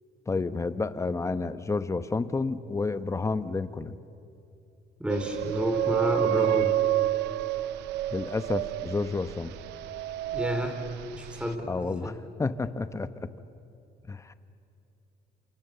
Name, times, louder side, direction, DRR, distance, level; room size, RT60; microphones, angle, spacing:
voice 1, 0.3-4.0 8.1-9.5 11.6-13.3 14.1-14.3, left 3 dB, 15° left, 12 dB, 1.0 m, -30 dB
voice 2, 5.0-6.7 10.3-10.8 11.1-11.7 12.0-12.1, equal, 5° right, 4 dB, 4.1 m, -29 dB
sound 1, 5.1-11.5, right 15 dB, 85° right, 0.8 m, -29 dB
28.5 x 27.5 x 6.9 m, 2.7 s
cardioid pair, 110°, 17 cm